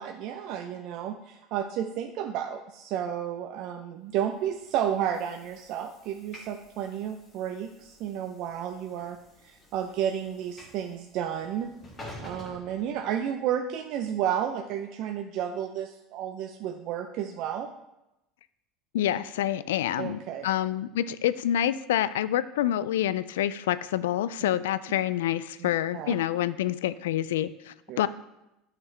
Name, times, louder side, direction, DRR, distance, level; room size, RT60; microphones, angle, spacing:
voice 1, 0.0-9.2 9.4-11.7 12.2-17.7 20.0-20.5 25.6-25.7 25.9-26.1 27.9-28.0, right 9 dB, 60° right, 4 dB, 0.5 m, -32 dB
Train / Sliding door, 4.3-13.6, left 1 dB, 30° left, 2.4 m, -50 dB
voice 2, 18.9-28.1, left 12 dB, 80° left, 16 dB, 0.3 m, -27 dB
9.0 x 5.8 x 3.3 m, 0.90 s
hypercardioid pair, 90°, 0 cm